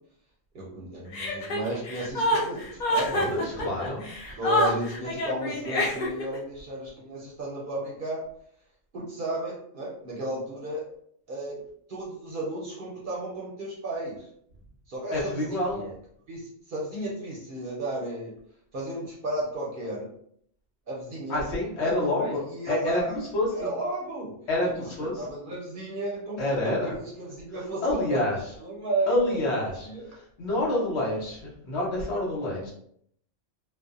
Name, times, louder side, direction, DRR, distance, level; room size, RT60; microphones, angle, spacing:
voice 1, 0.5-3.6 4.0-4.1 4.4-8.2 8.9-10.8 11.3-11.6 11.9-14.3 14.9-15.9 16.3-18.3 18.7-20.1 20.9-21.4 21.8-21.9 22.2-23.2 23.5-24.3 25.2-27.8 28.1-28.2 28.6-29.4 29.8-30.0, right 1 dB, 55° right, -5 dB, 0.7 m, -33 dB
Chuckle chortle, 1.1-6.4, left 1 dB, 50° left, 0.6 m, -27 dB
voice 2, 3.1-4.0 15.1-15.8 21.3-22.4 22.7-23.7 24.5-25.3 26.4-26.9 27.8-28.4 29.1-32.7, left 1 dB, 65° left, -4 dB, 1.1 m, -28 dB
2.6 x 2.1 x 2.4 m, 0.67 s
omnidirectional pair, 1.3 m